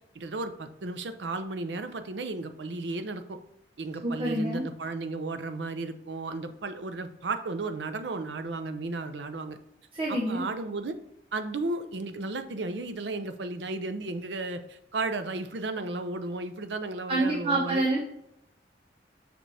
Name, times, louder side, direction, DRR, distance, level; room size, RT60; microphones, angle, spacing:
voice 1, 0.1-3.4 3.8-9.6 10.1-10.9 11.3-17.8, right 3 dB, 75° right, 9 dB, 0.6 m, -34 dB
voice 2, 4.0-4.6 9.9-10.4 17.1-18.0, right 2 dB, 30° right, -3 dB, 0.8 m, -27 dB
6.0 x 5.0 x 3.3 m, 0.77 s
head